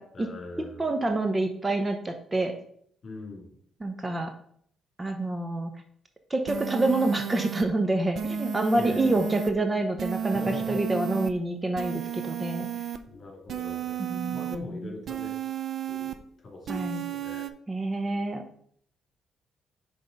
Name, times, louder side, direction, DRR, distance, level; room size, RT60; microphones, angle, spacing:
voice 1, 0.1-1.0 3.0-3.5 8.8-9.3 10.2-10.8 13.1-15.5 15.9-16.1 16.4-17.5, left 2 dB, 45° left, 0 dB, 2.7 m, -41 dB
voice 2, 0.8-2.5 3.8-4.3 5.0-5.7 6.3-10.4 10.7-12.7 14.0-14.7 16.7-17.0 17.7-18.6, right 2 dB, 20° right, 6 dB, 0.7 m, -27 dB
sound 1, 6.5-7.6 8.1-9.5 10.0-11.3 11.8-13.0 13.5-14.6 15.1-16.2 16.7-17.5, right 8 dB, 65° right, 0.5 m, -33 dB
5.9 x 3.5 x 5.3 m, 0.63 s
cardioid pair, 90°, 0 cm